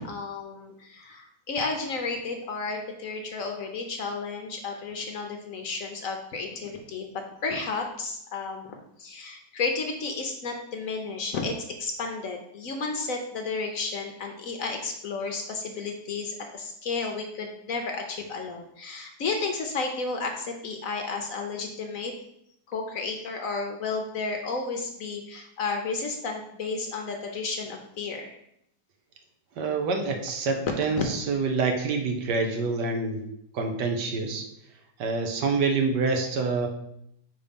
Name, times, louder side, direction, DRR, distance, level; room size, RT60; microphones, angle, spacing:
voice 1, 0.0-22.1 22.7-28.3 31.0-31.1, left 4 dB, 60° left, 3 dB, 1.0 m, -32 dB
voice 2, 29.6-33.2 33.5-34.5 35.0-36.7, right 4 dB, 75° right, 4 dB, 1.5 m, -26 dB
5.2 x 4.1 x 5.2 m, 0.76 s
omnidirectional pair, 1.9 m